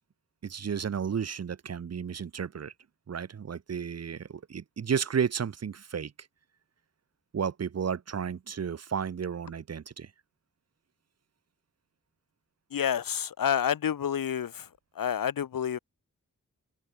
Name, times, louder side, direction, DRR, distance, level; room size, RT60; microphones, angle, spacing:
voice 1, 0.4-2.7 3.1-6.1 7.3-10.1, right 7 dB, 50° right, 0.7 m, -32 dB
voice 2, 12.7-14.7 15.0-15.8, left 9 dB, 85° left, 0.9 m, -29 dB
wide cardioid pair, 110°, 33 cm